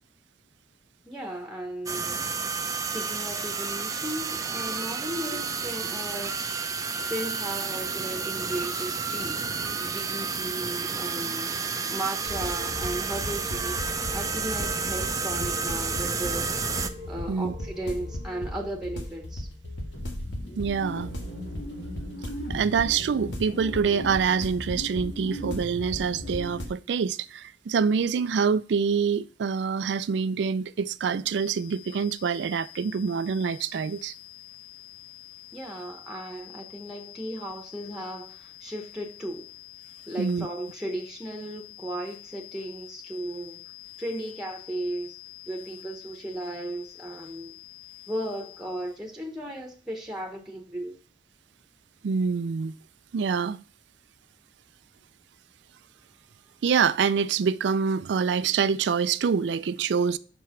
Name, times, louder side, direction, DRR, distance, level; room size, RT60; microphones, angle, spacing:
voice 1, 1.0-2.3 2.9-6.4 7.0-11.6 11.9-16.5 17.1-19.5 35.5-39.5 40.1-43.6 44.0-45.2 45.5-47.5 48.1-50.9, right 1 dB, 5° right, 1.0 m, -36 dB
sound 1, 1.9-16.9, right 5 dB, 20° right, 0.5 m, -31 dB
sound 2, 12.2-26.7, left 1 dB, 80° left, 1.6 m, -36 dB
voice 2, 20.6-21.1 22.5-34.1 40.2-40.5 52.0-52.8 53.1-53.6 56.6-60.2, right 6 dB, 70° right, 0.4 m, -26 dB
sound 3, 31.3-49.1, left 17 dB, 40° left, 0.6 m, -47 dB
6.0 x 4.7 x 5.7 m
head